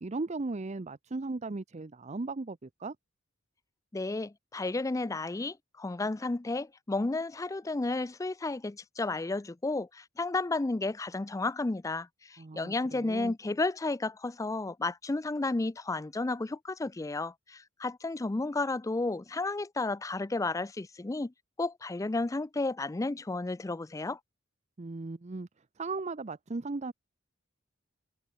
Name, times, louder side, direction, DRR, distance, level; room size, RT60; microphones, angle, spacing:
voice 1, 0.0-3.0 12.4-13.3 24.8-25.5 25.8-26.9, right 3 dB, 35° right, 0.6 m, -37 dB
voice 2, 3.9-21.3 21.6-24.2, left 2 dB, 15° left, 0.4 m, -32 dB
head